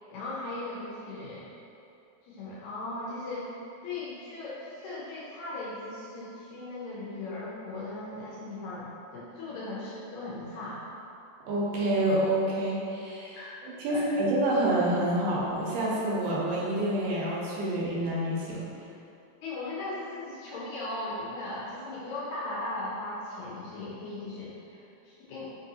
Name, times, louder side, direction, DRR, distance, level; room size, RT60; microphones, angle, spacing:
voice 1, 0.1-1.5 2.2-3.5 3.8-10.8 13.4-13.6 13.9-14.2 19.4-25.5, left 2 dB, 80° left, -7 dB, 1.8 m, -38 dB
voice 2, 11.5-18.6, right 1 dB, 90° right, -6 dB, 2.4 m, -28 dB
5.2 x 2.5 x 2.7 m, 2.6 s
omnidirectional pair, 3.7 m